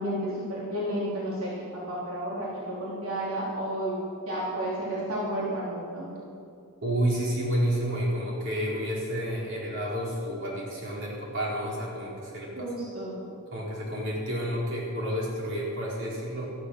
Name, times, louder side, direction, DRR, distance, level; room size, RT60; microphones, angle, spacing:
voice 1, 0.0-3.9 4.3-6.1 12.6-13.2, right 1 dB, 80° right, -6 dB, 3.3 m, -32 dB
voice 2, 6.8-12.7 13.5-16.5, equal, 60° right, -5 dB, 4.6 m, -30 dB
14.0 x 12.0 x 6.5 m, 2.4 s
head